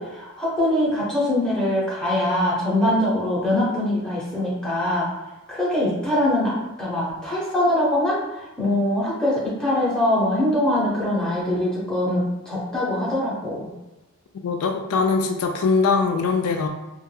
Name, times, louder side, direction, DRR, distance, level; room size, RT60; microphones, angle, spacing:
voice 1, 0.0-5.1 5.5-13.7, left 1 dB, 5° left, -7 dB, 0.6 m, -23 dB
voice 2, 14.4-16.7, left 4 dB, 75° left, 4 dB, 0.3 m, -21 dB
2.2 x 2.1 x 3.2 m, 1.0 s
head